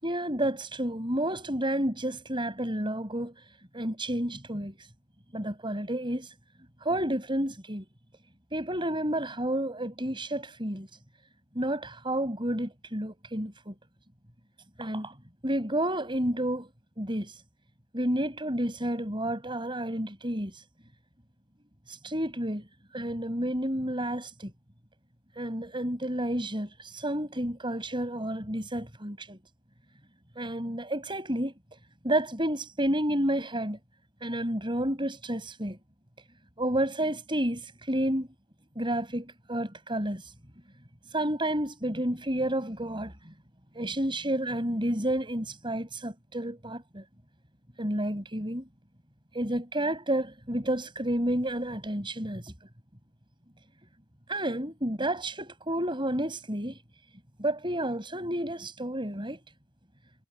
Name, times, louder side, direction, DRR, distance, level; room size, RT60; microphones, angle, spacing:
voice 1, 0.0-3.3 3.7-4.9 5.3-6.3 6.8-7.9 8.5-10.9 11.5-13.8 14.8-15.2 15.4-16.7 17.0-17.4 17.9-20.6 21.9-22.7 22.9-24.5 25.4-29.4 30.4-31.5 32.0-33.8 34.2-35.8 36.6-38.3 38.8-40.3 41.1-43.1 43.7-47.0 47.8-48.6 49.3-52.5 54.3-56.8 57.4-59.4, right 1 dB, 25° right, 6.0 m, -30 dB
head